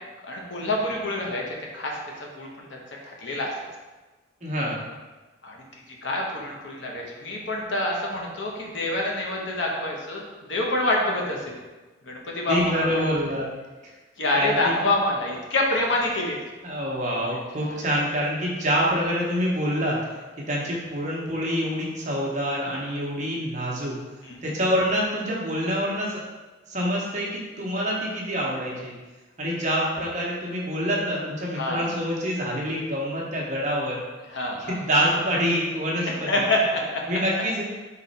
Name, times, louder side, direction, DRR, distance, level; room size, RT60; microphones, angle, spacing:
voice 1, 0.2-2.7 3.1-3.5 5.4-5.6 6.0-10.2 10.5-11.6 12.0-13.0 14.2-16.4 17.7-17.8 24.2-24.4 31.5-31.8 34.3-34.8 36.1-37.0, left 1 dB, 70° left, -1 dB, 0.8 m, -26 dB
voice 2, 4.4-4.8 12.5-13.5 13.8-13.9 14.3-14.7 16.6-20.0 20.4-23.9 24.4-26.2 26.7-28.9 29.4-34.0 34.6-36.4 37.1-37.6, equal, 35° right, -4 dB, 0.9 m, -26 dB
4.0 x 3.1 x 4.1 m, 1.2 s
head